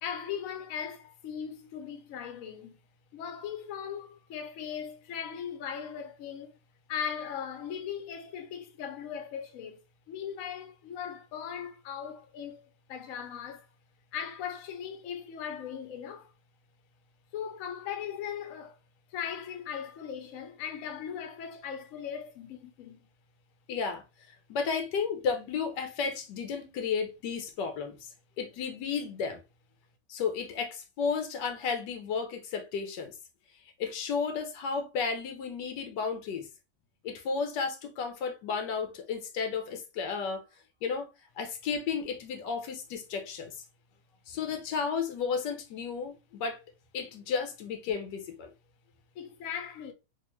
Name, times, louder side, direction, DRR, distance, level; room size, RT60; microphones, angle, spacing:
voice 1, 0.0-2.8 3.1-6.6 6.9-9.8 10.1-12.6 12.9-13.7 14.1-16.3 17.3-18.8 19.1-23.1 49.1-49.9, left 8 dB, 65° left, 0.9 m, -38 dB
voice 2, 23.7-24.0 24.5-28.1 28.4-29.4 30.1-33.1 33.8-36.5 37.0-40.4 40.8-41.1 41.4-43.5 44.3-46.6 46.9-48.5, left 5 dB, 90° left, 1.4 m, -33 dB
3.4 x 2.5 x 3.0 m
omnidirectional pair, 1.8 m